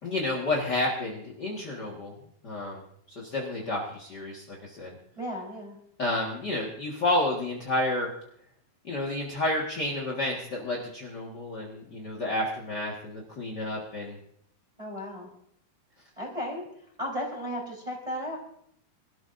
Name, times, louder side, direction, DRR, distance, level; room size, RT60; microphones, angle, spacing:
voice 1, 0.0-2.1 2.4-2.8 3.1-5.0 6.0-8.1 8.8-14.2, left 1 dB, 55° left, -2 dB, 1.1 m, -30 dB
voice 2, 5.1-5.8 14.8-15.3 16.2-16.6 17.0-18.4, equal, 10° right, -2 dB, 3.6 m, -34 dB
25.0 x 13.0 x 2.6 m, 0.68 s
omnidirectional pair, 4.8 m